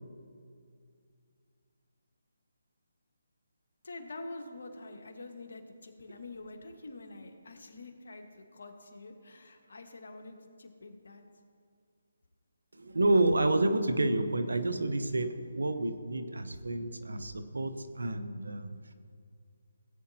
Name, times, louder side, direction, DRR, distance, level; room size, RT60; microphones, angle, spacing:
voice 1, 3.8-11.2, left 2 dB, 70° left, 4 dB, 1.4 m, -46 dB
voice 2, 12.7-18.9, right 2 dB, 85° right, 9 dB, 0.9 m, -29 dB
17.5 x 8.4 x 2.8 m, 2.2 s
figure-of-eight pair, 155°, 0 cm